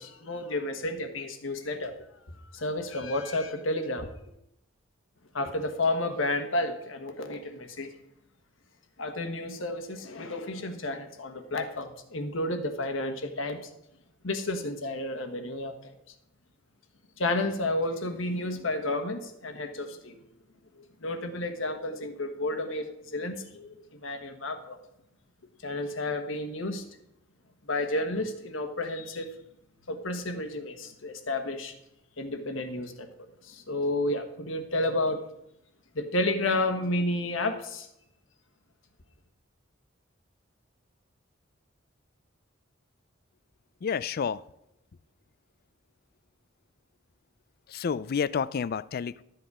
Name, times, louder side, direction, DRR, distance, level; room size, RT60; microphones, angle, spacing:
voice 1, 0.0-1.9 2.3-4.1 5.3-7.9 9.0-13.7 14.2-15.9 17.2-20.2 20.8-24.8 25.6-26.8 27.6-29.3 29.9-31.7 32.2-33.1 33.4-35.2 35.9-37.9, left 2 dB, 75° left, 7 dB, 1.3 m, -31 dB
voice 2, 43.8-44.4 47.7-49.2, left 6 dB, 50° left, 18 dB, 0.4 m, -29 dB
12.5 x 7.9 x 4.9 m, 0.81 s
head